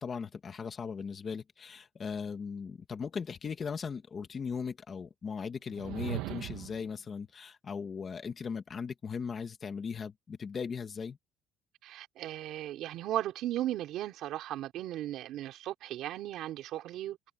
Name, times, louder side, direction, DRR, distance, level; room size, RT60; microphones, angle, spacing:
voice 1, 0.0-11.2, left 6 dB, 25° left, 1.8 m, -38 dB
sound 1, 5.7-6.9, right 16 dB, 80° right, 2.7 m, -38 dB
voice 2, 11.8-17.2, right 13 dB, 55° right, 4.6 m, -36 dB
cardioid pair, 170°, 0 cm